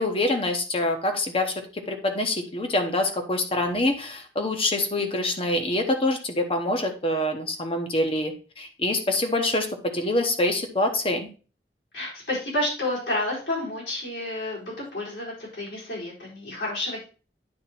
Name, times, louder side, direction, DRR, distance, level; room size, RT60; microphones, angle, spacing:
voice 1, 0.0-11.3, left 1 dB, 30° left, 5 dB, 1.0 m, -25 dB
voice 2, 11.9-17.0, left 1 dB, 80° left, -5 dB, 4.3 m, -30 dB
9.7 x 3.7 x 4.3 m, 0.36 s
head